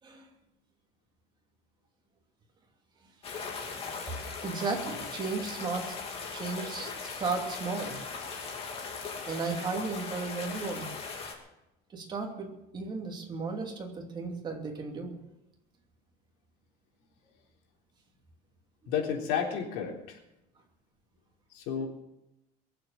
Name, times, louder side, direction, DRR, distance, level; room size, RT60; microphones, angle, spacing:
sound 1, 3.2-11.3, left 5 dB, 35° left, 2.7 m, -39 dB
voice 1, 4.4-6.0 6.3-6.9 7.2-8.0 9.3-10.9 11.9-15.1, right 4 dB, 25° right, 1 dB, 2.8 m, -34 dB
voice 2, 18.9-20.2 21.5-21.9, left 7 dB, 90° left, 0 dB, 3.8 m, -31 dB
22.0 x 7.8 x 7.5 m, 0.90 s
cardioid pair, 160°, 18 cm